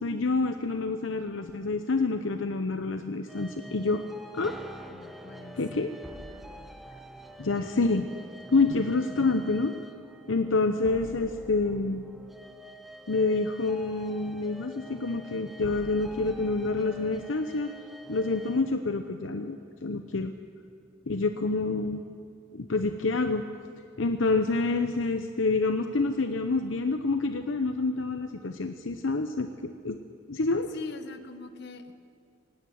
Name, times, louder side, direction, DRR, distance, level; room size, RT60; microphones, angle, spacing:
voice 1, 0.0-4.0 4.3-4.5 5.5-5.9 7.4-8.1 8.5-9.7 10.3-12.0 13.1-17.7 18.1-19.6 19.8-20.3 21.1-22.0 22.5-23.4 24.0-30.0 30.3-30.7, left 3 dB, 75° left, 7 dB, 0.8 m, -27 dB
sound 1, 3.3-18.8, equal, ahead, 0.9 m, -47 dB
voice 2, 4.9-5.9 6.9-7.0 30.7-31.9, left 3 dB, 55° left, 9 dB, 1.3 m, -43 dB
18.0 x 17.5 x 9.4 m, 2.3 s
head